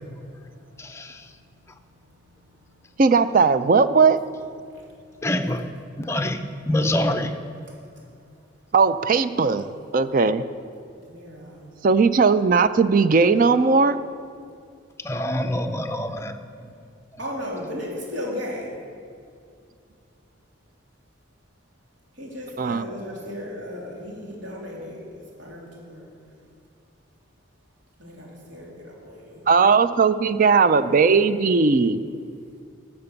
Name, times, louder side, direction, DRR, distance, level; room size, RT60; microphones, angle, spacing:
voice 1, 0.2-1.3 4.7-4.8 11.1-11.7 17.2-18.7 22.2-25.0 25.4-26.1 28.0-29.4, left 1 dB, 70° right, -3 dB, 3.0 m, -36 dB
voice 2, 0.8-1.2 5.2-5.6 6.0-7.3 15.0-16.4, left 1 dB, 15° left, 7 dB, 0.5 m, -25 dB
voice 3, 3.0-4.2 8.7-9.7 9.9-10.4 11.8-14.0 22.6-22.8 29.5-32.0, right 4 dB, 45° right, 13 dB, 0.4 m, -18 dB
12.0 x 6.8 x 7.0 m, 2.3 s
head